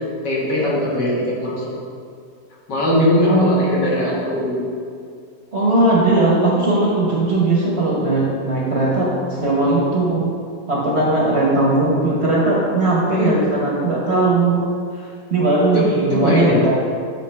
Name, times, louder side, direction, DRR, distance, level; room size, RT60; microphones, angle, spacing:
voice 1, 0.2-1.6 2.7-4.6 13.1-13.3 16.1-16.6, left 1 dB, 75° left, -6 dB, 2.1 m, -19 dB
voice 2, 3.3-3.8 5.5-10.3 10.7-14.5 15.0-16.7, right 2 dB, 45° right, -5 dB, 0.9 m, -18 dB
7.3 x 4.8 x 3.2 m, 2.2 s
omnidirectional pair, 1.9 m